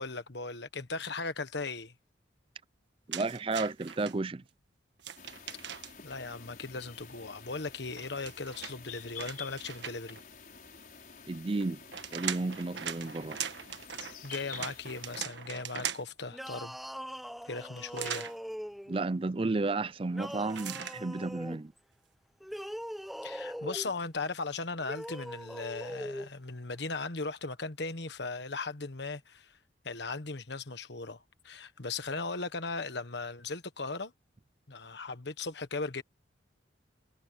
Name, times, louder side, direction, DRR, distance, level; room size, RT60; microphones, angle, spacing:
voice 1, 0.0-1.9 6.0-10.2 14.2-16.8 17.5-18.3 23.2-29.6 29.8-34.1 34.7-36.0, left 3 dB, 65° left, 1.4 m, -38 dB
voice 2, 3.1-4.4 11.3-11.8 12.1-13.4 18.9-21.7, right 3 dB, 30° right, 0.4 m, -32 dB
sound 1, 3.1-4.1 5.0-6.1 7.9-10.2 11.6-16.2 17.9-18.4 20.5-21.0, right 9 dB, 75° right, 1.4 m, -40 dB
sound 2, 5.2-15.2, left 6 dB, 45° left, 5.6 m, -49 dB
sound 3, 16.3-19.0 20.1-21.6 22.4-23.9 24.8-26.3, equal, ahead, 0.9 m, -41 dB
head